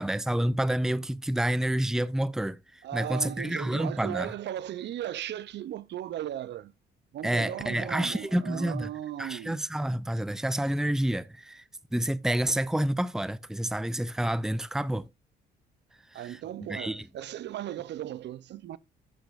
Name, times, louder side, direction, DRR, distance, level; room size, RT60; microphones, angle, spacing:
voice 1, 0.0-4.3 7.2-8.9 9.2-11.6 11.9-15.1 16.1-16.4 16.7-17.1, right 1 dB, 5° right, 0.6 m, -29 dB
voice 2, 2.8-6.7 7.1-9.6 16.1-18.8, right 12 dB, 65° right, 0.7 m, -37 dB
11.5 x 8.4 x 2.6 m
supercardioid pair, 55°, 20 cm